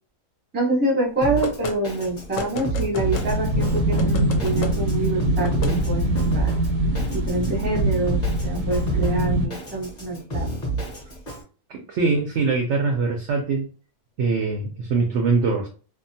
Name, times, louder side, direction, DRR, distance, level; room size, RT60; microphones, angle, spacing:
voice 1, 0.5-6.6 7.1-10.5, right 2 dB, 10° right, -3 dB, 0.5 m, -26 dB
Drum kit, 1.2-11.4, right 3 dB, 35° left, 0.8 m, -30 dB
sound 1, 1.4-1.8 2.3-3.3 4.0-4.7 5.4-5.7, left 4 dB, 65° left, 0.9 m, -31 dB
sound 2, 3.0-9.5, right 1 dB, 85° right, 1.2 m, -23 dB
voice 2, 11.7-13.7 14.2-15.7, right 4 dB, 70° right, 2 dB, 0.6 m, -23 dB
2.7 x 2.1 x 2.6 m, 0.37 s
omnidirectional pair, 1.7 m